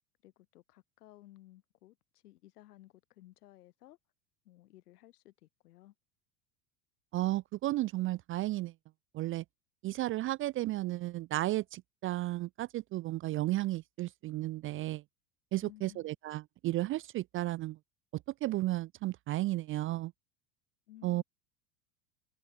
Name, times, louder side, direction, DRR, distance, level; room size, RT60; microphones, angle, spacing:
voice 1, 0.2-4.0 4.4-5.9 15.6-16.2 20.9-21.2, left 15 dB, 75° left, 3.7 m, -57 dB
voice 2, 7.1-8.7 9.1-9.4 9.8-15.0 15.5-17.8 18.4-20.1 21.0-21.2, right 17 dB, 30° right, 0.4 m, -33 dB
hypercardioid pair, 85°, 47 cm